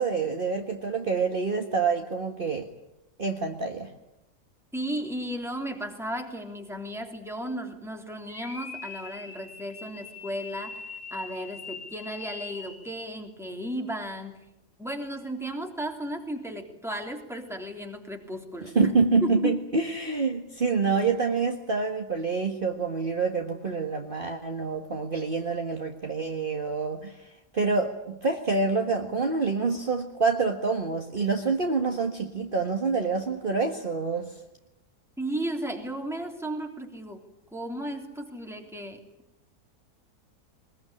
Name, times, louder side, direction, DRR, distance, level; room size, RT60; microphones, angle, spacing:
voice 1, 0.0-2.7 3.2-3.9 18.8-34.4, right 4 dB, 35° right, 3 dB, 1.8 m, -27 dB
voice 2, 4.7-14.4 14.8-18.9 19.2-19.5 35.2-37.2 37.5-39.0, right 1 dB, ahead, 2 dB, 3.3 m, -34 dB
sound 1, 8.3-13.0, left 5 dB, 85° left, 3.0 m, -42 dB
22.5 x 21.5 x 10.0 m, 0.89 s
omnidirectional pair, 1.6 m